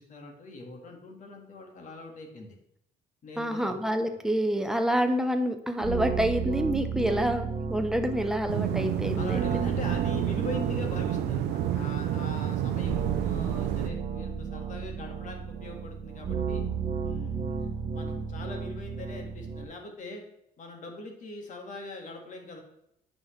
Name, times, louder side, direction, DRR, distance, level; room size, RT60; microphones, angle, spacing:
voice 1, 0.0-2.6 3.2-3.7 9.2-16.6 17.0-20.2 20.6-22.6, left 2 dB, 50° left, 3 dB, 1.8 m, -42 dB
voice 2, 3.4-9.4, equal, 5° right, 6 dB, 0.8 m, -27 dB
sound 1, 5.8-19.6, right 5 dB, 40° right, 1.1 m, -34 dB
sound 2, 8.5-13.9, right 11 dB, 90° right, 0.7 m, -29 dB
9.1 x 5.9 x 3.2 m, 0.79 s
cardioid pair, 110°, 17 cm